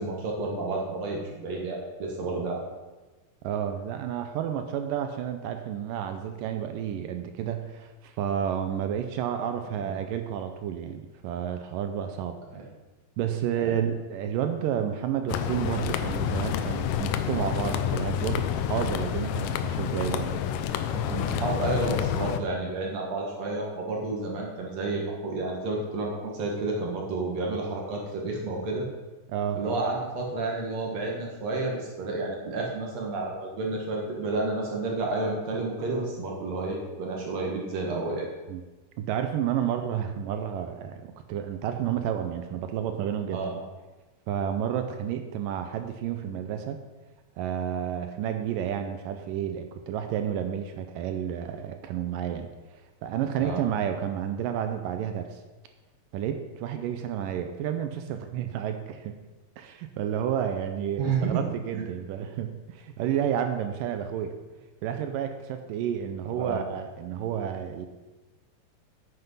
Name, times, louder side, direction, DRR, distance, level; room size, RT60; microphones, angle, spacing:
voice 1, 0.0-2.6 9.8-9.9 12.5-12.6 13.6-13.8 19.9-20.4 20.9-28.9 29.6-38.3 43.3-43.6 53.3-53.6 61.0-61.4 61.7-61.8 66.4-66.6, right 3 dB, 55° right, -1 dB, 2.4 m, -31 dB
voice 2, 3.4-12.4 13.2-20.3 29.3-29.6 38.5-38.6 39.0-43.4 44.3-46.8 47.4-52.5 53.0-55.4 56.1-59.1 59.6-64.4 64.8-67.9, right 9 dB, 75° right, 7 dB, 2.1 m, -30 dB
sound 1, 15.3-22.4, left 9 dB, 80° left, 2.1 m, -29 dB
9.2 x 8.0 x 5.5 m, 1.2 s
omnidirectional pair, 4.3 m